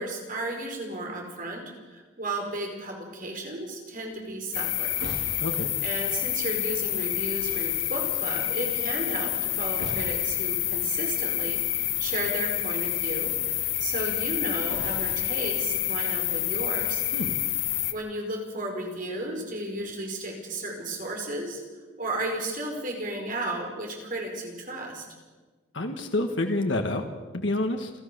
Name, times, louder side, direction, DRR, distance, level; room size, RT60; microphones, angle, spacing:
voice 1, 0.0-1.6 1.9-5.0 5.3-5.4 5.8-17.0 17.9-21.6 22.0-25.0, right 1 dB, 45° right, 1 dB, 5.0 m, -34 dB
sound 1, 4.1-16.1, right 1 dB, 70° right, 4.1 m, -46 dB
sound 2, 4.5-17.9, left 14 dB, 85° left, 1.5 m, -28 dB
voice 2, 5.4-5.7 17.1-17.4 25.7-27.0 27.3-27.9, left 2 dB, 70° left, 4 dB, 1.7 m, -28 dB
29.0 x 13.0 x 7.0 m, 1.3 s
head